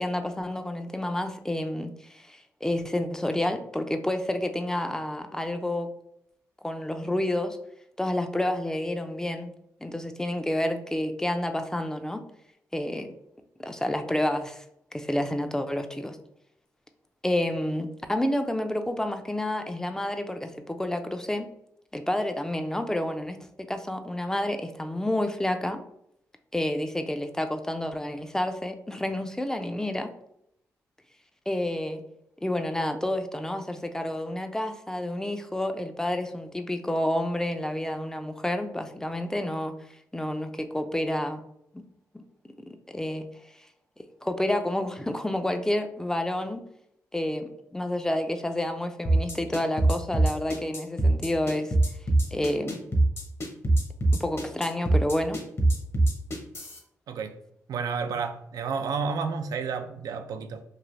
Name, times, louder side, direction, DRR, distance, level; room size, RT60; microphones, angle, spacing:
voice 1, 0.0-5.9 6.6-7.6 8.0-9.5 9.8-12.2 12.7-13.1 13.6-14.6 14.9-16.2 17.2-21.5 21.9-25.8 26.5-30.1 31.5-32.0 32.4-39.7 40.1-41.4 41.7-41.8 42.1-42.2 42.7-43.3 44.2-46.6 47.1-51.7 52.3-52.9 54.1-55.4, left 1 dB, 10° left, 7 dB, 0.4 m, -29 dB
sound 1, 49.0-56.8, right 2 dB, 45° left, 0.9 m, -23 dB
voice 2, 57.1-57.4 57.7-60.6, right 5 dB, 75° right, 8 dB, 0.4 m, -31 dB
3.2 x 2.6 x 2.5 m, 0.75 s
cardioid pair, 60°, 6 cm